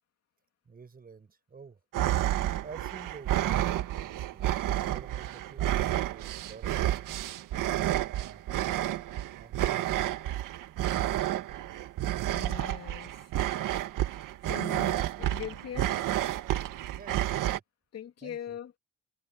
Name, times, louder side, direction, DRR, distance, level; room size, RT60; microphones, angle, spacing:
voice 1, 0.6-1.8 2.2-7.3 8.1-8.4 9.3-9.8 16.9-17.6 18.2-18.6, right 5 dB, 25° right, 6.5 m, -50 dB
sound 1, 1.9-17.6, right 13 dB, 75° right, 1.7 m, -30 dB
voice 2, 12.3-13.3 14.5-16.0 17.9-18.7, left 9 dB, 50° left, 2.8 m, -41 dB
cardioid pair, 135°, 32 cm